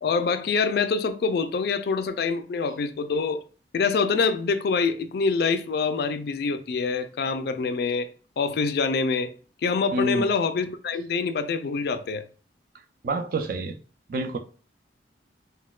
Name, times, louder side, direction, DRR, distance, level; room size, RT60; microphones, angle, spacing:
voice 1, 0.0-3.4 3.7-8.1 8.4-9.3 9.6-12.2, left 4 dB, 60° left, 0.3 m, -25 dB
voice 2, 9.9-10.3 13.0-13.7 14.1-14.4, right 2 dB, 50° right, 0.4 m, -27 dB
4.1 x 2.1 x 2.3 m
head